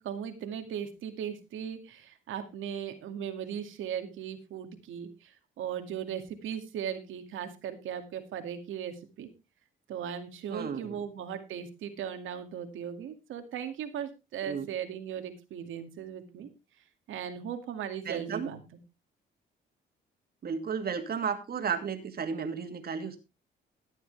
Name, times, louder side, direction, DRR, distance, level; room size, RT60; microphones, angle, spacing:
voice 1, 0.0-9.3 9.9-16.5 17.1-18.6, right 8 dB, 80° right, 8 dB, 2.2 m, -38 dB
voice 2, 10.5-11.0 14.4-14.7 18.1-18.5 20.4-23.2, right 6 dB, 50° right, 7 dB, 2.4 m, -33 dB
13.5 x 10.0 x 3.4 m, 0.27 s
cardioid pair, 90°, 20 cm